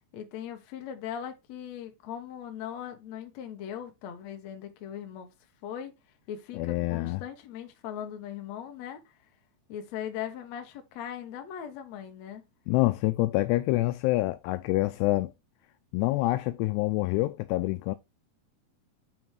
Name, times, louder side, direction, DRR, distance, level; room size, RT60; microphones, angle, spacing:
voice 1, 0.1-5.3 5.6-5.9 6.3-9.2 9.7-12.5, left 9 dB, 60° left, 1.9 m, -39 dB
voice 2, 6.5-7.2 12.7-15.3 15.9-18.0, left 19 dB, 85° left, 2.7 m, -26 dB
8.6 x 3.9 x 4.4 m
omnidirectional pair, 4.7 m